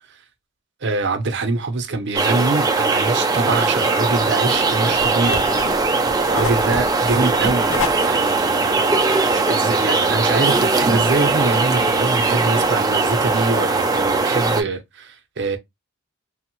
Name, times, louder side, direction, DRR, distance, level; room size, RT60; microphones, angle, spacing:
voice 1, 0.8-5.5 6.3-7.7 8.0-15.6, right 3 dB, 55° right, 0.6 m, -24 dB
sound 1, 2.2-14.6, right 3 dB, 20° right, 0.4 m, -19 dB
sound 2, 4.5-9.4, left 3 dB, 65° left, 0.6 m, -30 dB
3.1 x 2.0 x 3.0 m
head